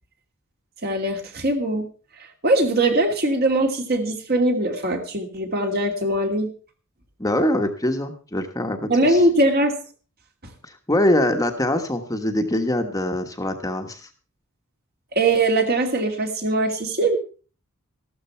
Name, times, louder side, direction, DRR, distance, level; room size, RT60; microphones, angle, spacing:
voice 1, 0.8-1.9 2.4-6.5 8.9-9.7 15.1-17.2, right 1 dB, 45° right, 4 dB, 2.6 m, -21 dB
voice 2, 7.2-9.2 10.7-14.1, left 1 dB, 15° left, 5 dB, 1.2 m, -23 dB
14.0 x 13.0 x 4.4 m, 0.37 s
head